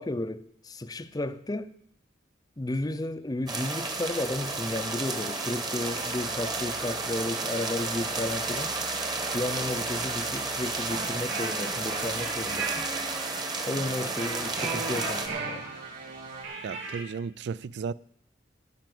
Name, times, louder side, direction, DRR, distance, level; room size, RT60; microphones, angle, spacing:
voice 1, 0.0-1.8 2.6-8.8 9.3-12.9 13.6-15.7, left 1 dB, 20° left, 0.5 m, -33 dB
sound 1, 3.5-15.3, right 3 dB, 20° right, 1.3 m, -32 dB
sound 2, 3.6-16.4, right 3 dB, 50° right, 3.1 m, -43 dB
sound 3, 10.9-17.0, right 4 dB, 90° right, 3.1 m, -36 dB
voice 2, 16.6-17.9, right 5 dB, 65° right, 0.4 m, -34 dB
15.0 x 5.8 x 7.7 m
head